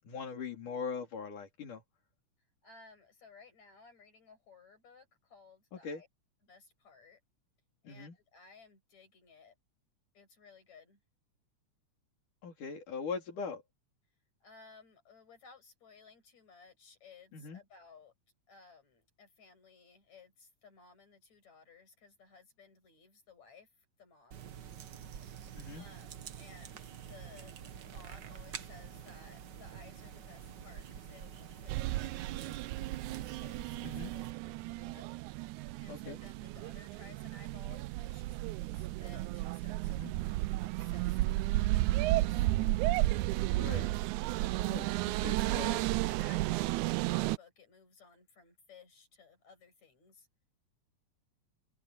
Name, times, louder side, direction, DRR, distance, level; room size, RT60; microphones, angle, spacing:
voice 1, 0.0-1.8 5.8-6.0 7.8-8.1 12.4-13.6 17.3-17.6 25.6-25.9 33.8-34.1 35.9-36.2 39.9-40.1 43.6-43.9 44.6-44.9 45.2-45.8, left 5 dB, 90° left, 5.0 m, -41 dB
voice 2, 2.6-6.1 6.4-7.2 7.8-9.6 10.1-11.0 14.4-18.1 18.5-24.5 25.2-35.1 35.4-42.5 44.4-44.8 45.2-50.3, left 5 dB, 60° left, 8.8 m, -58 dB
sound 1, 24.3-34.3, right 8 dB, 65° right, 1.1 m, -48 dB
sound 2, 31.7-47.4, right 18 dB, 80° right, 1.9 m, -33 dB
open air
omnidirectional pair, 3.5 m